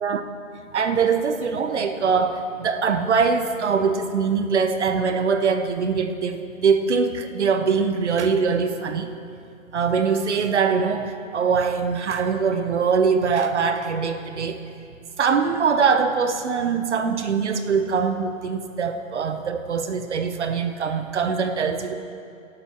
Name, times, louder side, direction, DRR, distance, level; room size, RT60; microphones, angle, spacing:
voice 1, 0.7-9.1 9.7-14.6 15.2-22.0, right 5 dB, 55° right, 7 dB, 0.8 m, -22 dB
16.5 x 12.0 x 3.0 m, 2.5 s
hypercardioid pair, 165°, 41 cm